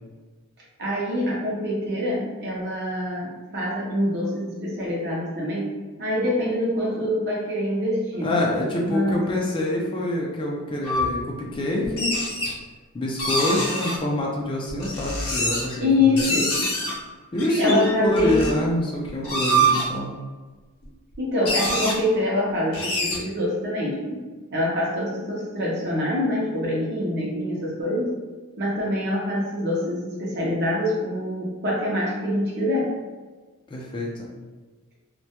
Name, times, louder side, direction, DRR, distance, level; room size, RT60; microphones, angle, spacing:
voice 1, 0.8-8.4 8.8-9.2 15.8-16.8 17.6-18.5 21.2-24.2 24.5-28.1 28.6-33.0, left 1 dB, 50° right, -5 dB, 0.5 m, -25 dB
voice 2, 8.2-12.1 12.9-16.3 17.3-20.1 33.7-34.3, left 1 dB, 20° left, -2 dB, 0.3 m, -26 dB
sound 1, 10.8-11.1 11.8-12.5 13.2-14.0 14.7-15.8 16.2-16.9 17.4-18.5 19.1-19.8 20.8-20.9 21.1-21.2 21.5-21.9 22.7-23.2, right 1 dB, 70° left, 0.7 m, -25 dB
2.1 x 2.0 x 2.8 m, 1.3 s
head